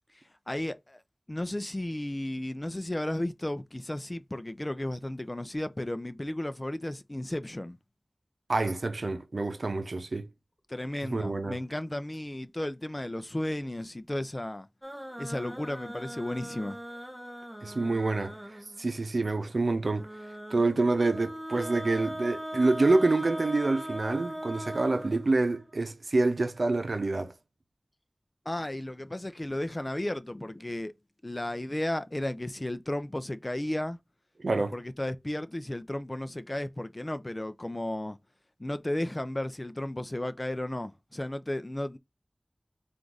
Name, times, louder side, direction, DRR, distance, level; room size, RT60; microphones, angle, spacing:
voice 1, 0.5-1.0 1.3-7.8 10.7-14.7 15.2-16.8 28.5-30.9 31.2-34.0 34.7-38.2 38.6-42.0, left 1 dB, 30° left, 0.5 m, -34 dB
voice 2, 8.5-10.3 11.1-11.6 17.6-20.1 20.5-27.3 34.4-34.7, right 3 dB, 85° right, 0.7 m, -27 dB
sound 1, 14.8-18.8 19.9-25.7, equal, 10° right, 0.9 m, -39 dB
4.5 x 2.6 x 3.9 m
wide cardioid pair, 55°, 0 cm